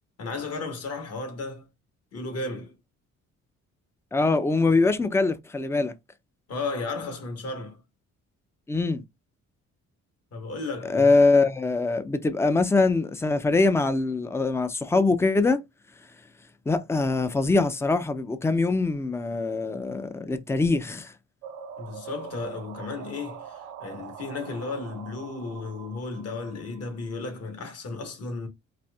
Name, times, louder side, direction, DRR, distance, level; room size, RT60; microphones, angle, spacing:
voice 1, 0.2-1.7 2.1-2.7 6.5-7.8 10.3-11.1 21.8-28.5, left 3 dB, 55° left, 1.3 m, -34 dB
voice 2, 4.1-5.9 8.7-9.0 10.9-15.6 16.7-21.1, left 3 dB, 10° left, 0.4 m, -23 dB
sound 1, 21.4-27.2, right 8 dB, 90° right, 0.7 m, -43 dB
4.2 x 2.5 x 2.3 m
cardioid pair, 90°, 30 cm